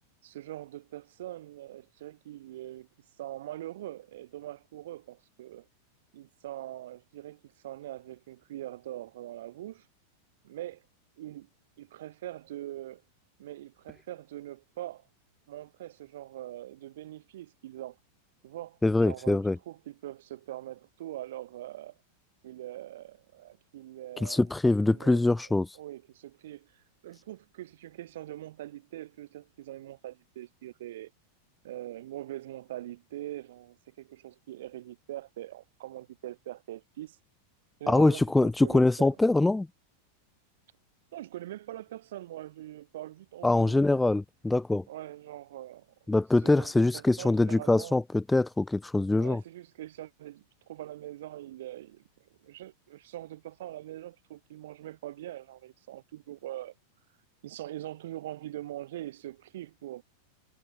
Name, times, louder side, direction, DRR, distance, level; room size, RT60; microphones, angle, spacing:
voice 1, 0.2-2.9 3.2-5.7 6.1-9.9 10.4-10.8 11.2-11.5 11.8-13.0 13.4-15.1 15.5-18.0 18.4-22.0 22.4-24.5 24.8-25.2 25.7-31.1 31.6-37.2 37.8-39.1 41.1-44.0 44.9-45.9 46.4-48.0 49.2-52.0 52.4-56.7 57.4-60.0, right 14 dB, 55° right, 5.1 m, -42 dB
voice 2, 18.8-19.6 24.2-25.8 37.9-39.7 43.4-44.8 46.1-49.4, left 2 dB, 5° left, 1.3 m, -24 dB
figure-of-eight pair, 90°, 0 cm